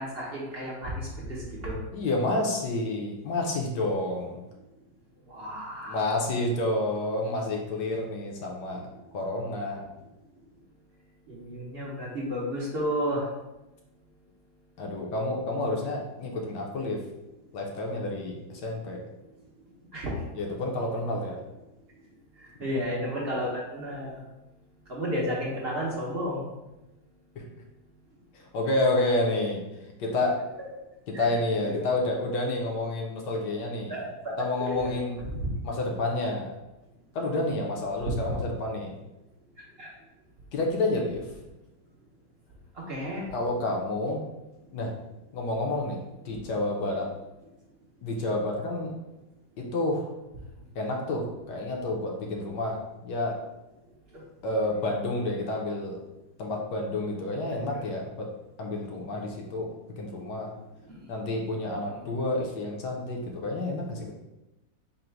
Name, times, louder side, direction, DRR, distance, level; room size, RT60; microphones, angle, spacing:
voice 1, 0.0-1.8 5.3-5.9 11.3-13.3 19.9-20.1 22.4-24.1 24.9-26.4 31.1-31.3 33.9-34.3 34.6-34.9 35.4-35.5 39.8-39.9 42.7-43.3 54.1-54.2 60.9-61.0 61.9-62.0, equal, 55° right, -6 dB, 0.7 m, -32 dB
voice 2, 1.9-4.4 5.9-8.8 9.1-9.9 14.8-17.0 17.5-19.0 20.3-21.4 22.7-22.8 27.4-27.5 28.3-29.6 30.0-30.3 31.1-33.9 34.4-35.2 35.6-36.5 37.1-39.0 40.5-41.3 43.3-44.2 44.7-44.9 45.3-47.1 48.0-48.9 49.6-50.1 50.7-52.8 53.0-53.3 54.4-56.0 56.4-58.3 58.6-59.7 60.0-60.5 61.1-64.1, left 2 dB, 70° left, 0 dB, 1.3 m, -29 dB
3.9 x 2.1 x 4.4 m, 0.99 s
omnidirectional pair, 2.0 m